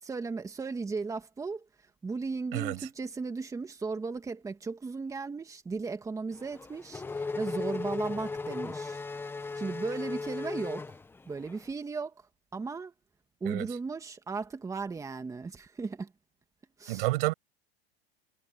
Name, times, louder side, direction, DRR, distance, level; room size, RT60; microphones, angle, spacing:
voice 1, 0.0-1.7 2.0-9.0 9.6-11.0 11.3-12.2 12.5-12.9 13.4-16.1 16.8-17.1, right 4 dB, 10° right, 2.2 m, -36 dB
Race car auto racing / Accelerating revving vroom, 6.4-11.6, left 4 dB, 5° left, 1.0 m, -36 dB
voice 2, 16.9-17.3, right 21 dB, 60° right, 6.7 m, -29 dB
supercardioid pair, 150°, 31 cm